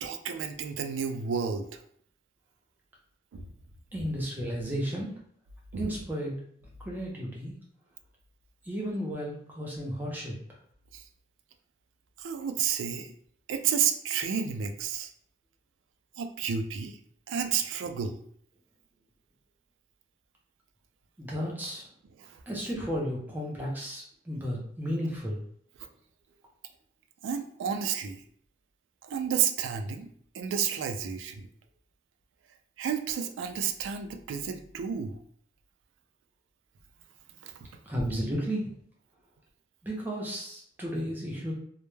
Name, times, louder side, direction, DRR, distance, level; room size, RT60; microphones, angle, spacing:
voice 1, 0.0-1.8 3.3-3.5 5.7-5.9 10.9-11.0 12.2-13.1 13.5-15.1 16.2-17.0 17.3-18.2 22.2-22.4 27.2-28.2 29.0-30.1 30.3-31.5 32.8-35.2 37.4-37.7, right 7 dB, 90° right, 7 dB, 0.3 m, -31 dB
voice 2, 3.9-5.1 5.8-6.3 6.8-7.5 8.6-10.3 21.2-21.8 22.5-25.4 37.9-38.7 39.8-41.5, equal, 10° right, -3 dB, 0.5 m, -33 dB
2.1 x 2.0 x 3.1 m, 0.63 s
head